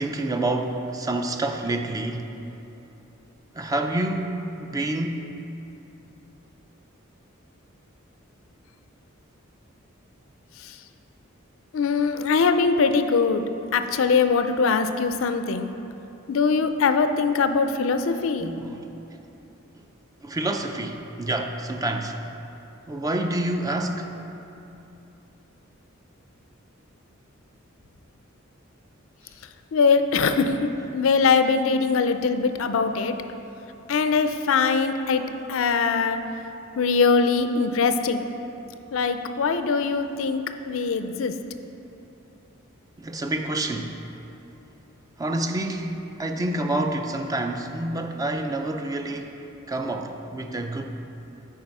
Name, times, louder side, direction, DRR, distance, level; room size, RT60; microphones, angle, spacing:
voice 1, 0.0-2.3 3.5-5.3 18.4-18.9 20.2-22.2 22.9-24.1 43.0-44.0 45.2-50.9, right 2 dB, 15° right, 4 dB, 0.4 m, -28 dB
voice 2, 11.7-13.4 13.7-15.7 16.3-18.5 29.7-33.1 33.9-35.2 35.5-36.2 36.8-38.2 38.9-41.3, left 5 dB, 70° left, 9 dB, 0.4 m, -22 dB
8.9 x 4.6 x 5.4 m, 3.0 s
head